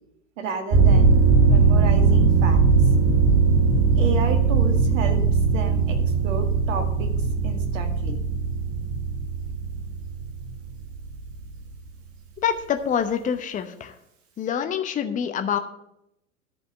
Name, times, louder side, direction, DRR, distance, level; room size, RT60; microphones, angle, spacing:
voice 1, 0.4-1.1 1.4-2.6 4.0-5.2 5.5-6.0 6.2-7.1 7.4-8.2, right 5 dB, 60° right, 6 dB, 2.1 m, -31 dB
sound 1, 0.7-11.5, right 4 dB, 30° right, 1.6 m, -20 dB
voice 2, 12.4-13.9 14.4-15.6, left 8 dB, 20° left, 7 dB, 0.8 m, -26 dB
10.5 x 5.5 x 7.7 m, 0.81 s
figure-of-eight pair, 90°, 44 cm